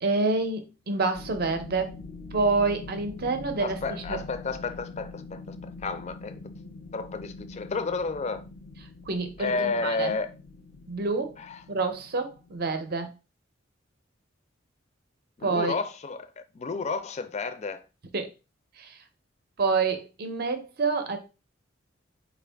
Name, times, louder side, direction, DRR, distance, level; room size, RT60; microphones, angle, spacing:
voice 1, 0.0-1.9 2.3-3.8 4.1-4.2 9.1-10.2 10.9-11.3 11.7-13.1 15.4-15.7 18.1-18.3 18.8-19.0 19.6-21.2, right 3 dB, 50° right, 0.6 m, -27 dB
sound 1, 1.1-12.7, left 3 dB, 85° left, 0.6 m, -44 dB
voice 2, 3.6-6.4 6.9-8.4 9.4-10.4 11.4-11.6 15.4-17.8, left 4 dB, 35° left, 0.4 m, -31 dB
4.3 x 2.4 x 3.3 m
head